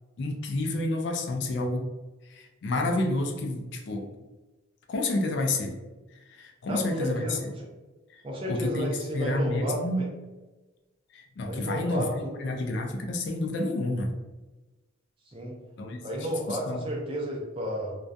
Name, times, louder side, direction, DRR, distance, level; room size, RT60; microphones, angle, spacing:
voice 1, 0.2-1.9 2.3-4.1 4.9-5.7 6.3-7.4 8.1-8.2 8.5-10.1 11.1-14.1 15.8-16.9, left 2 dB, 55° left, 3 dB, 0.3 m, -29 dB
voice 2, 6.7-7.5 8.2-10.1 11.5-12.6 15.3-15.5 16.0-18.0, equal, 25° right, -2 dB, 0.5 m, -32 dB
2.3 x 2.2 x 2.5 m, 1.2 s
head